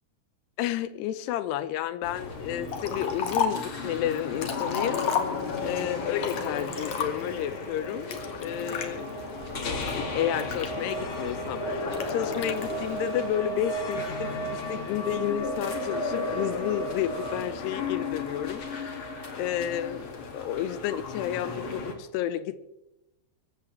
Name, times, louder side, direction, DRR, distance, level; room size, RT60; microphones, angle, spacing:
voice 1, 0.6-5.1 5.6-8.1 8.4-9.1 9.6-22.6, left 11 dB, 80° left, 13 dB, 2.6 m, -31 dB
sound 1, 2.0-21.9, left 2 dB, 40° left, 2.1 m, -34 dB
Liquid, 2.7-3.7 4.2-5.7 6.2-7.4 8.1-8.9 9.5-11.1 11.9-12.7, left 6 dB, 55° left, 2.1 m, -32 dB
25.0 x 14.0 x 3.3 m, 0.92 s
omnidirectional pair, 5.2 m